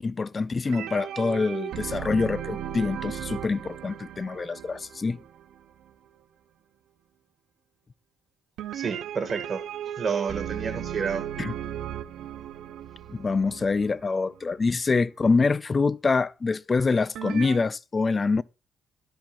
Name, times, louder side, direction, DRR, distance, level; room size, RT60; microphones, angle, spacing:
voice 1, 0.0-5.2 11.4-11.5 13.1-18.4, left 4 dB, 30° left, 0.3 m, -25 dB
sound 1, 0.6-5.9 8.6-14.5 17.2-17.6, right 10 dB, 80° right, 0.6 m, -36 dB
voice 2, 8.7-9.6 10.0-11.2, right 5 dB, 40° right, 1.7 m, -30 dB
13.0 x 6.0 x 2.3 m
cardioid pair, 90°, 0 cm